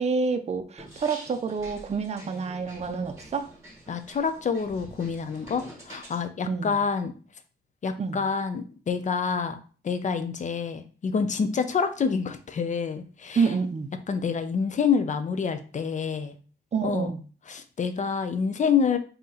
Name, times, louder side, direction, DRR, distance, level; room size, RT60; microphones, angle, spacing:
voice 1, 0.0-3.5 6.5-6.8 8.0-8.2 13.4-13.9 16.7-17.2, right 5 dB, 35° right, 8 dB, 0.5 m, -28 dB
sound 1, 0.8-6.2, right 1 dB, 15° right, 1.3 m, -47 dB
voice 2, 3.9-7.1 7.8-9.6 9.8-13.4 14.1-16.4 16.8-17.1 17.5-19.0, left 6 dB, 45° left, 9 dB, 0.5 m, -27 dB
3.8 x 2.8 x 4.0 m, 0.40 s
wide cardioid pair, 165°, 18 cm